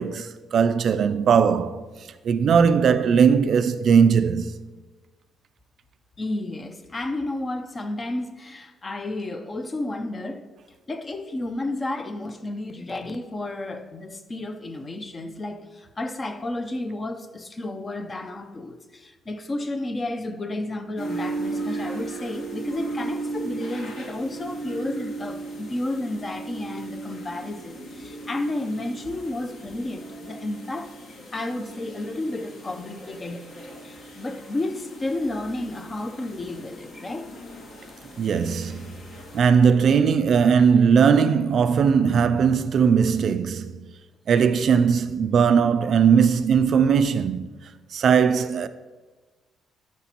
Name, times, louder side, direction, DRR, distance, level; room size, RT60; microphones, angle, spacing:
voice 1, 0.0-1.8 2.2-4.6 38.2-38.9 39.3-43.9 44.3-47.5 47.9-48.7, right 6 dB, 50° right, 0.3 m, -19 dB
voice 2, 6.2-10.5 10.9-30.9 31.3-33.5 33.8-37.3, left 2 dB, 25° left, 0.5 m, -32 dB
sound 1, 21.0-39.4, right 3 dB, 55° left, 1.5 m, -36 dB
11.0 x 6.0 x 2.9 m
cardioid pair, 130°, 0 cm